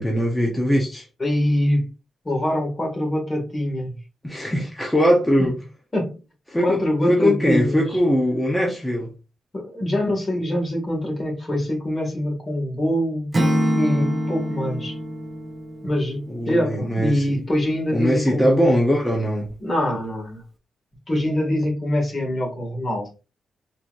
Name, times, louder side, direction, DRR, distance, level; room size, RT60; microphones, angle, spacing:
voice 1, 0.0-1.1 4.2-5.5 6.5-9.1 16.3-17.4 17.9-19.5, equal, 10° left, 1.0 m, -21 dB
voice 2, 1.2-1.9 2.2-3.9 5.9-6.2 6.6-7.9 9.5-13.3 13.7-14.9 15.8-18.6 19.6-20.4 21.1-23.2, left 1 dB, 35° left, 2.1 m, -24 dB
Acoustic guitar / Strum, 13.3-16.4, equal, 30° right, 1.1 m, -24 dB
4.3 x 3.0 x 2.6 m
cardioid pair, 75°, 0 cm